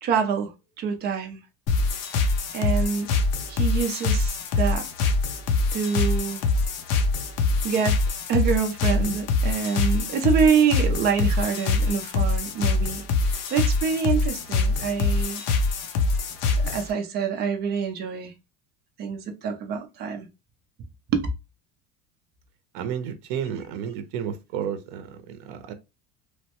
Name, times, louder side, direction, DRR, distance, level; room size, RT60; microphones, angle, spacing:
voice 1, 0.0-1.4 2.5-3.1 3.5-4.9 5.7-6.4 7.6-8.0 8.3-13.0 13.5-15.4 16.6-18.3 19.0-20.3 21.1-21.3, right 6 dB, 35° right, 0.4 m, -26 dB
sound 1, 1.7-16.9, left 3 dB, 50° left, 0.5 m, -24 dB
voice 2, 22.7-25.7, right 8 dB, 80° right, 0.6 m, -32 dB
3.1 x 2.1 x 2.8 m
cardioid pair, 180°, 31 cm